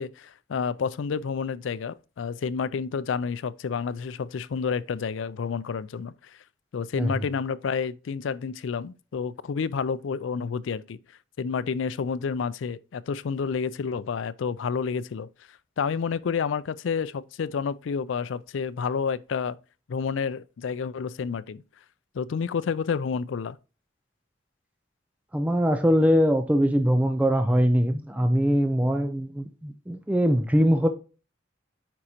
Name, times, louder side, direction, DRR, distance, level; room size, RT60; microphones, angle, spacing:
voice 1, 0.0-6.4 6.7-11.0 11.4-15.3 15.8-19.6 19.9-21.6 22.1-23.6, left 6 dB, 90° left, 0.4 m, -29 dB
voice 2, 25.3-30.9, equal, 10° right, 0.5 m, -22 dB
9.1 x 5.0 x 2.8 m
head